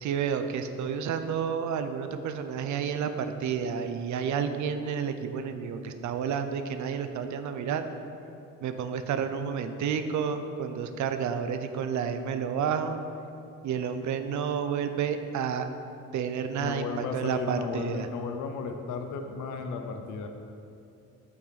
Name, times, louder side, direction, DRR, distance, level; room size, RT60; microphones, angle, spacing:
voice 1, 0.0-7.9 8.6-13.0 13.6-15.7 16.1-18.1, right 7 dB, 70° right, 9 dB, 0.7 m, -30 dB
voice 2, 16.6-20.3, left 5 dB, 80° left, 5 dB, 0.8 m, -34 dB
8.7 x 7.4 x 4.1 m, 2.7 s
cardioid pair, 90°, 30 cm